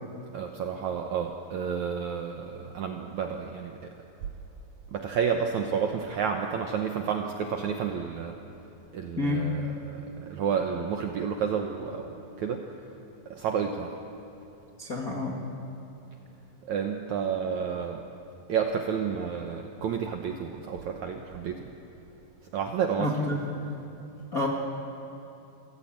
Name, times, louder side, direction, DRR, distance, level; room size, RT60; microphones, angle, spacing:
voice 1, 0.3-3.9 4.9-8.4 8.9-12.7 13.3-14.0 16.6-18.0 18.5-21.7 22.5-23.2, right 7 dB, 70° right, 3 dB, 1.8 m, -30 dB
voice 2, 14.8-15.4 23.0-23.4 24.3-24.5, left 2 dB, 40° left, -1 dB, 1.2 m, -28 dB
28.0 x 15.5 x 8.7 m, 2.8 s
omnidirectional pair, 4.6 m